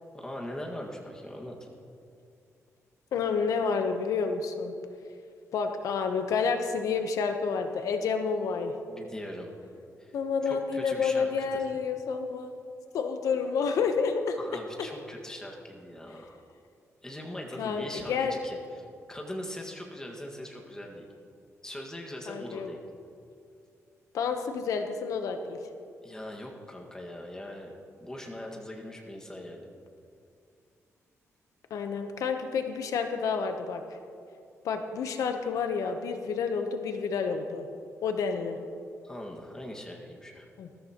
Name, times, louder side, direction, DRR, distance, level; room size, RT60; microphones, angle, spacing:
voice 1, 0.1-1.7 8.9-9.5 10.0-10.2 10.4-11.6 14.4-16.4 17.0-21.1 21.6-22.8 26.0-27.7 28.0-29.7 39.0-40.5, left 1 dB, 10° left, -1 dB, 1.8 m, -41 dB
voice 2, 3.1-4.7 5.5-8.7 10.1-12.6 12.9-14.4 17.6-18.3 22.3-22.7 24.1-25.6 31.7-33.8 34.6-37.7 38.0-38.6 40.6-40.7, left 5 dB, 85° left, 6 dB, 0.9 m, -29 dB
20.5 x 13.5 x 3.0 m, 2.5 s
wide cardioid pair, 135°, 6 cm